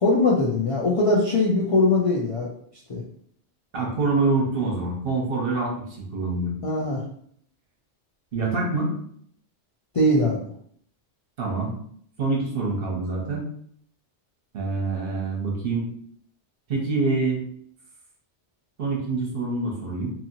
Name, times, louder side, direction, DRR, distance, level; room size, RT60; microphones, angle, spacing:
voice 1, 0.0-2.5 2.9-3.0 6.6-7.0 9.9-10.4, left 2 dB, 45° left, -5 dB, 0.4 m, -21 dB
voice 2, 3.7-6.5 8.3-8.9 11.4-11.7 12.2-13.5 14.5-15.8 16.7-17.4 18.8-20.1, right 3 dB, 55° right, -2 dB, 1.0 m, -25 dB
2.8 x 2.7 x 2.7 m, 0.62 s
omnidirectional pair, 1.2 m